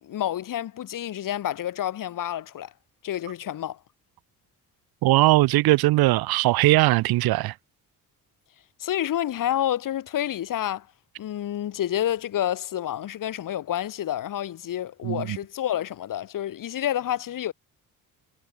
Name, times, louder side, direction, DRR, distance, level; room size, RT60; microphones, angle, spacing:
voice 1, 0.0-2.7 3.0-3.8 8.8-10.9 11.2-17.5, left 11 dB, 60° left, 1.4 m, -29 dB
voice 2, 5.0-7.5 15.0-15.4, right 18 dB, 80° right, 0.6 m, -20 dB
cardioid pair, 100°, 37 cm